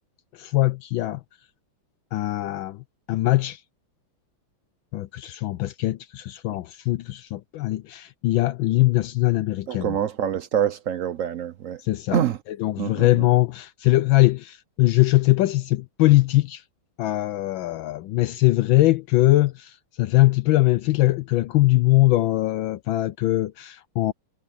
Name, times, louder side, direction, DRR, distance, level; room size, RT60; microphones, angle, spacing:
voice 1, 0.3-1.2 2.1-2.8 3.1-3.6 4.9-10.0 11.8-12.2 12.6-16.6 17.0-24.1, left 18 dB, 75° left, 1.3 m, -21 dB
voice 2, 9.7-11.8 12.1-12.4 12.8-13.3, right 9 dB, 80° right, 0.7 m, -26 dB
omnidirectional pair, 2.3 m